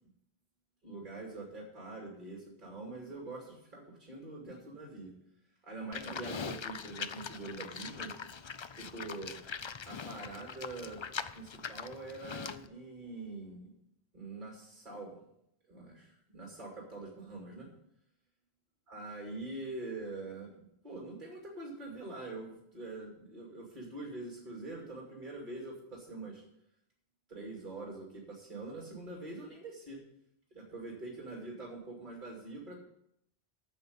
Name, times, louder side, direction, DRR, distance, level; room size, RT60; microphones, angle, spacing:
voice 1, 0.8-5.1 5.6-8.1 8.8-9.4 9.8-11.0 11.3-13.7 14.1-15.2 15.7-17.7 18.9-26.4 27.3-30.0 30.5-32.8, right 2 dB, 45° right, -2 dB, 2.8 m, -44 dB
Livestock farm animals working animals, 5.9-12.7, left 6 dB, 50° left, 0.3 m, -42 dB
9.3 x 7.1 x 8.0 m, 0.77 s
omnidirectional pair, 1.1 m